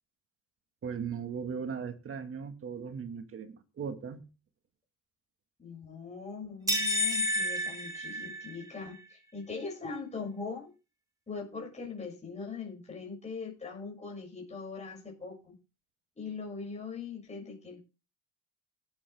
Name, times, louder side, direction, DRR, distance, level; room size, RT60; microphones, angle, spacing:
voice 1, 0.8-4.2, right 6 dB, 40° right, 1.9 m, -38 dB
voice 2, 5.6-10.7 11.3-15.5 16.2-17.8, left 4 dB, 20° left, 6.6 m, -41 dB
sound 1, 6.7-8.8, left 1 dB, 10° right, 3.3 m, -30 dB
17.0 x 8.5 x 3.5 m
cardioid pair, 120°, 32 cm